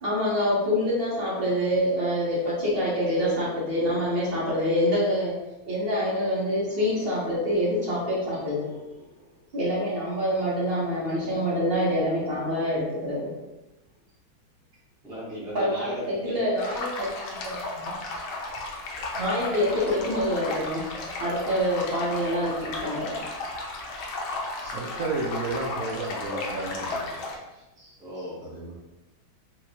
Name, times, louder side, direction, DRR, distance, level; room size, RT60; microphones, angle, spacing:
voice 1, 0.0-5.4 5.7-9.0 9.5-13.3 15.5-17.9 19.1-20.9 21.2-23.2, equal, 45° right, -7 dB, 0.8 m, -26 dB
voice 2, 15.0-16.4 27.8-28.5, equal, 5° right, -8 dB, 0.5 m, -37 dB
sound 1, 16.6-27.4, left 2 dB, 85° left, 1.5 m, -34 dB
voice 3, 24.6-27.3 28.4-28.8, right 2 dB, 75° right, -4 dB, 0.8 m, -32 dB
4.2 x 2.1 x 2.8 m, 1.0 s
omnidirectional pair, 2.2 m